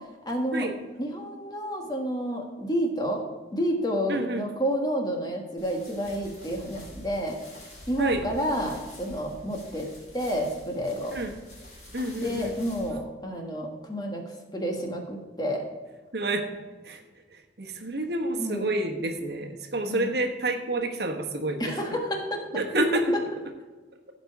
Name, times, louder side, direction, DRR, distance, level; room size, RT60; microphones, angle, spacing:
voice 1, 0.2-0.7 1.0-3.2 3.5-7.4 7.9-11.2 12.1-14.2 14.5-15.6 18.4-18.7 19.8-20.1 21.6-22.4, equal, 20° left, 1 dB, 1.6 m, -30 dB
voice 2, 4.1-4.5 8.0-8.2 11.1-11.3 11.9-12.5 16.1-16.4 16.8-17.0 17.3-21.7 22.5-23.1, right 2 dB, 65° right, 4 dB, 1.2 m, -28 dB
sound 1, 5.6-12.9, left 1 dB, 40° left, 4.0 m, -46 dB
16.0 x 5.3 x 4.8 m, 1.3 s
head